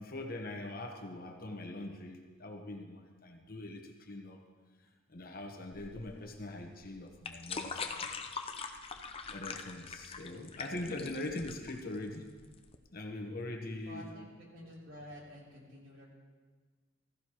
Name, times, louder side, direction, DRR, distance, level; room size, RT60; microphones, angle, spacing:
voice 1, 0.0-4.4 5.1-8.1 9.3-12.3 12.9-14.0, left 2 dB, 45° left, 3 dB, 1.1 m, -42 dB
sound 1, 5.7-12.8, left 5 dB, 25° left, 0.6 m, -43 dB
voice 2, 13.8-16.1, equal, 65° right, -4 dB, 3.4 m, -50 dB
15.5 x 14.5 x 3.0 m, 1.5 s
head